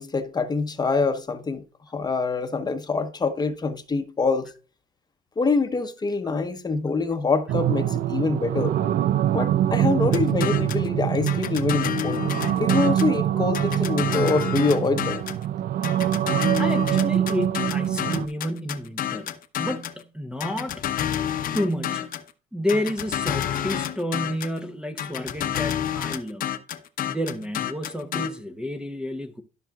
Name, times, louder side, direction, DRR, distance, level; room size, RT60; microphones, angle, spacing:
voice 1, 0.0-1.6 1.9-4.5 5.4-8.7 9.3-12.2 12.5-15.3, left 4 dB, 25° left, 1.0 m, -25 dB
sound 1, 7.5-18.3, right 11 dB, 60° right, 0.4 m, -24 dB
sound 2, 10.1-10.9 11.3-13.2 13.5-15.4 15.8-20.0 20.4-22.3 22.7-24.6 25.0-28.3, left 10 dB, 55° left, 0.9 m, -29 dB
voice 2, 16.6-19.3 19.6-20.9 21.5-22.2 22.5-26.5 27.0-29.4, left 1 dB, 5° right, 0.8 m, -30 dB
13.0 x 5.9 x 2.4 m
cardioid pair, 110°, 17 cm